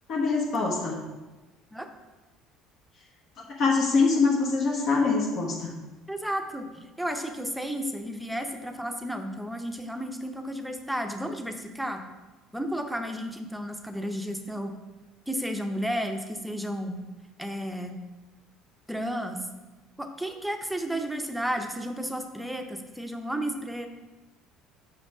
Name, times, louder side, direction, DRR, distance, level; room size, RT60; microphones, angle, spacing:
voice 1, 0.1-1.0 3.6-5.7, left 4 dB, 55° left, -2 dB, 1.1 m, -24 dB
voice 2, 6.1-12.0 12.5-14.8 15.3-17.0 17.4-17.9 18.9-19.5 20.0-23.9, equal, ahead, 5 dB, 0.7 m, -32 dB
5.8 x 5.0 x 4.8 m, 1.2 s
cardioid pair, 110°, 0 cm